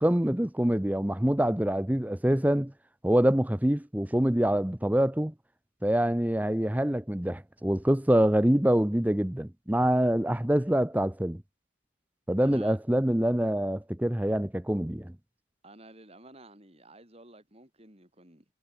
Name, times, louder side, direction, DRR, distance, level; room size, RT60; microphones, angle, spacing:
voice 1, 0.0-2.7 3.0-5.3 5.8-11.4 12.3-15.1, right 1 dB, 10° right, 0.7 m, -25 dB
voice 2, 12.4-12.8 15.6-18.4, right 2 dB, 30° right, 5.1 m, -52 dB
head